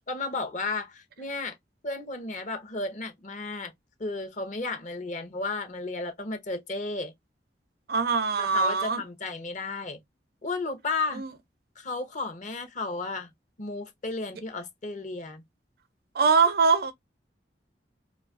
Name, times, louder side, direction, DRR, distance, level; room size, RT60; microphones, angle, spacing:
voice 1, 0.1-1.6 1.8-3.7 4.0-7.1 8.4-10.0 10.4-11.2 11.8-13.3 13.6-15.4, left 3 dB, 45° left, 0.7 m, -33 dB
voice 2, 7.9-9.0 11.1-11.3 16.2-16.9, right 4 dB, 60° right, 0.5 m, -22 dB
2.5 x 2.3 x 2.4 m
head